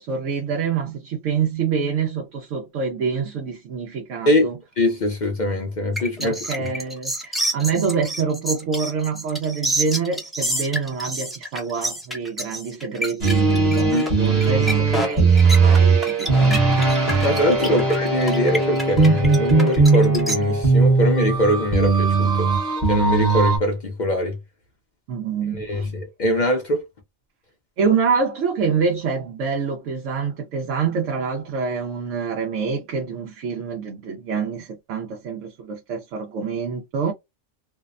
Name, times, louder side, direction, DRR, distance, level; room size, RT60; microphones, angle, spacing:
voice 1, 0.0-4.6 6.2-16.6 17.6-17.8 25.1-25.9 27.8-37.1, right 5 dB, 75° right, 0.9 m, -26 dB
voice 2, 4.8-6.7 13.9-14.0 16.4-16.6 17.2-22.5 22.9-24.4 25.5-26.8, left 1 dB, 55° left, 0.5 m, -22 dB
sound 1, 6.0-20.4, right 1 dB, ahead, 0.4 m, -28 dB
sound 2, 13.2-23.6, right 4 dB, 35° right, 1.0 m, -18 dB
2.6 x 2.0 x 2.4 m
omnidirectional pair, 1.3 m